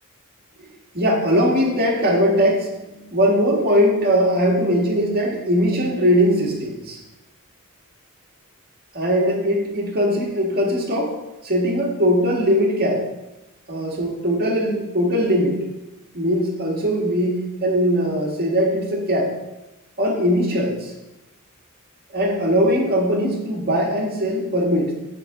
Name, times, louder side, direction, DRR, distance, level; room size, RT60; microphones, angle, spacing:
voice 1, 0.9-7.0 8.9-11.1 11.4-13.1 13.7-15.7 16.1-19.3 20.0-20.9 22.1-24.9, equal, 45° right, -2 dB, 1.8 m, -20 dB
8.6 x 3.6 x 6.7 m, 0.97 s
head